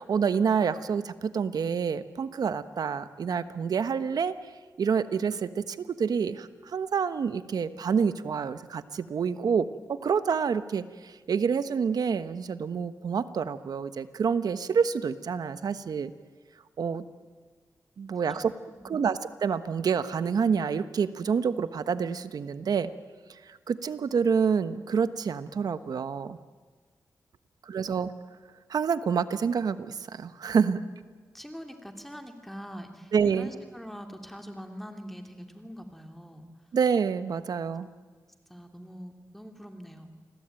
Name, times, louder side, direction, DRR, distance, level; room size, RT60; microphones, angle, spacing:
voice 1, 0.0-4.4 4.8-16.1 16.8-17.0 18.0-18.5 18.8-22.9 23.3-26.4 27.6-28.1 28.7-30.8 33.1-33.5 36.7-37.9, right 6 dB, 75° right, 12 dB, 1.2 m, -28 dB
voice 2, 18.3-19.0 31.3-36.7 38.5-40.1, equal, 5° left, 5 dB, 2.6 m, -44 dB
28.0 x 21.5 x 9.1 m, 1.5 s
cardioid pair, 85°, 7 cm